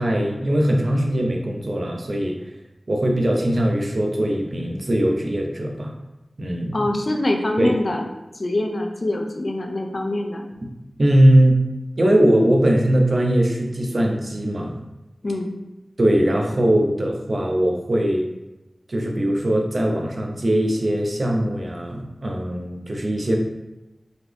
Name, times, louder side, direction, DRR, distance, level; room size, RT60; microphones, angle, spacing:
voice 1, 0.0-2.4 2.9-5.9 6.4-6.8 7.6-7.7 11.0-11.6 12.0-14.7 16.0-18.3 18.9-23.4, right 1 dB, 55° right, 1 dB, 0.7 m, -20 dB
voice 2, 6.7-8.0 8.4-10.5 15.2-15.5, left 1 dB, 55° left, 3 dB, 0.6 m, -24 dB
4.0 x 3.0 x 3.4 m, 1.0 s
wide cardioid pair, 70°, 0 cm